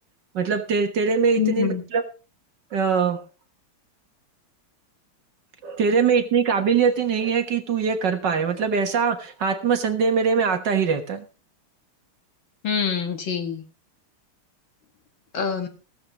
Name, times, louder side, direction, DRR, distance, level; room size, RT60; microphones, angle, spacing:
voice 1, 0.3-2.0 2.7-3.2 5.6-11.2, right 6 dB, 55° right, 7 dB, 1.9 m, -22 dB
voice 2, 1.4-1.8 12.6-13.6 15.3-15.7, left 7 dB, 65° left, 6 dB, 2.5 m, -25 dB
15.5 x 13.0 x 3.0 m, 0.33 s
omnidirectional pair, 2.3 m